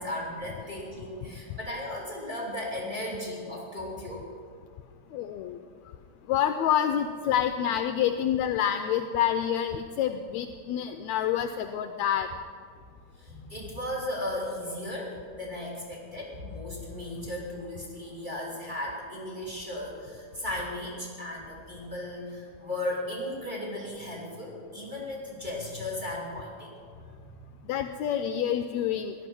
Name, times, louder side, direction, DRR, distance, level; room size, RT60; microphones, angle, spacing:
voice 1, 0.0-4.2 13.2-27.1, left 1 dB, 15° right, -3 dB, 2.7 m, -36 dB
voice 2, 5.1-5.6 6.3-12.3 27.7-29.1, left 9 dB, 80° left, 8 dB, 1.7 m, -27 dB
17.0 x 11.5 x 6.0 m, 2.1 s
omnidirectional pair, 3.5 m